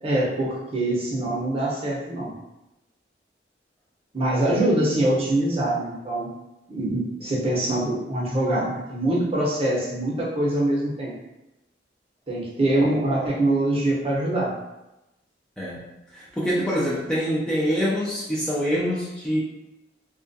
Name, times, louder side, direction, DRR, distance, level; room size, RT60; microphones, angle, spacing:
voice 1, 0.0-2.3 4.1-6.3 6.7-11.1 12.3-14.5, right 1 dB, 35° right, -5 dB, 0.6 m, -24 dB
voice 2, 15.6-15.9 16.1-19.4, equal, 5° left, -7 dB, 0.4 m, -25 dB
2.3 x 2.2 x 2.6 m, 0.94 s
head